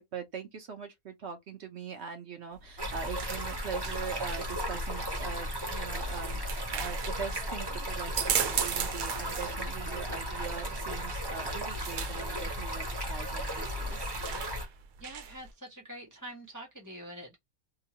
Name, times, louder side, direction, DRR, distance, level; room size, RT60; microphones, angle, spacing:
voice 1, 0.0-14.1, right 6 dB, 60° right, 0.8 m, -42 dB
sound 1, 2.5-15.5, right 8 dB, 80° right, 1.0 m, -38 dB
Stream, 2.8-14.7, equal, 25° right, 0.5 m, -35 dB
voice 2, 15.0-17.4, right 1 dB, 20° left, 0.5 m, -45 dB
2.9 x 2.2 x 2.7 m
omnidirectional pair, 1.5 m